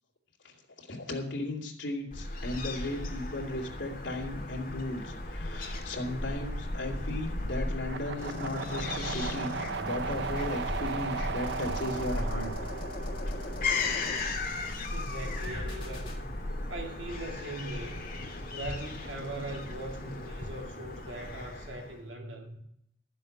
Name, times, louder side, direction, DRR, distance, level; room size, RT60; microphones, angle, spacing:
voice 1, 0.8-9.5 9.8-12.5, left 1 dB, 75° left, 2.9 m, -36 dB
Fowl / Gull seagull, 2.1-22.0, left 2 dB, 50° left, 2.3 m, -36 dB
sound 1, 7.8-14.0, right 5 dB, 65° right, 0.5 m, -37 dB
sound 2, 8.2-16.2, left 1 dB, 30° left, 2.8 m, -43 dB
voice 2, 14.9-16.3 16.7-18.0 18.5-22.6, right 1 dB, 90° right, 2.2 m, -40 dB
12.0 x 7.5 x 6.6 m
head